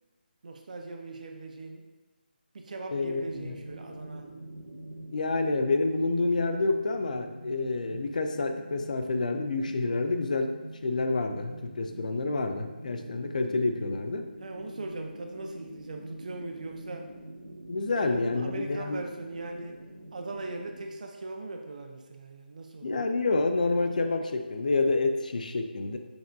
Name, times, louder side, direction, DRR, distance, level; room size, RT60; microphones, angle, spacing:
voice 1, 0.4-1.8 2.5-4.3 14.4-17.1 18.0-19.8 20.1-23.1, right 2 dB, 50° right, 4 dB, 0.4 m, -39 dB
voice 2, 2.9-3.6 5.1-10.5 10.8-14.2 17.7-19.0 22.8-26.0, left 3 dB, 50° left, 6 dB, 0.4 m, -28 dB
sound 1, 3.1-20.9, right 1 dB, 85° right, 1.0 m, -45 dB
5.9 x 2.5 x 2.3 m, 1.2 s
figure-of-eight pair, 170°, 5 cm